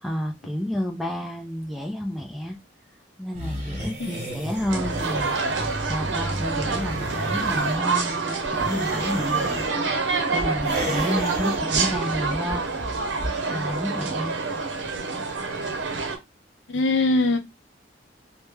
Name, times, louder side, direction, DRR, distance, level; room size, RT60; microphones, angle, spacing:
voice 1, 0.0-2.6 3.2-9.6 9.9-12.7 13.0-13.2 13.5-14.4, equal, ahead, 0.5 m, -30 dB
sound 1, 3.3-7.8 8.4-9.7 10.6-11.6, right 1 dB, 35° right, 1.2 m, -33 dB
sound 2, 4.7-16.2, right 4 dB, 85° right, 0.7 m, -27 dB
sound 3, 10.4-13.5 13.8-13.9, equal, 25° left, 0.9 m, -36 dB
voice 2, 16.7-17.4, left 2 dB, 90° left, 0.7 m, -22 dB
3.1 x 2.1 x 3.3 m
head